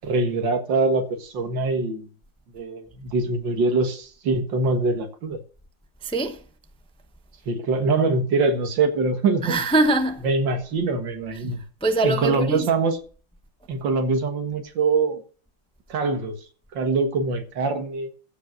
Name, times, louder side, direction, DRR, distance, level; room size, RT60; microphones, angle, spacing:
voice 1, 0.0-2.1 2.5-5.4 7.5-9.6 10.2-11.6 12.0-13.0 13.7-15.2 15.9-16.4 16.7-18.1, right 3 dB, 90° right, 2.3 m, -23 dB
voice 2, 6.0-6.4 9.4-10.2 11.8-12.7, right 2 dB, 5° left, 0.5 m, -22 dB
14.5 x 5.2 x 7.9 m
omnidirectional pair, 1.9 m